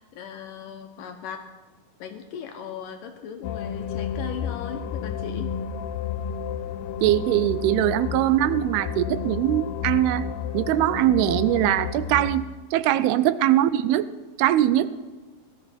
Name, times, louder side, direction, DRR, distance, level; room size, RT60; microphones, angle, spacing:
voice 1, 0.0-1.5 2.0-5.5 12.9-13.2, left 7 dB, 75° left, 5 dB, 2.1 m, -38 dB
sound 1, 3.4-12.3, left 7 dB, 90° left, 2.6 m, -31 dB
voice 2, 7.0-10.3 10.5-12.5 12.7-14.1 14.4-14.9, right 13 dB, 85° right, 15 dB, 2.5 m, -21 dB
17.5 x 12.5 x 4.3 m, 1.2 s
omnidirectional pair, 4.5 m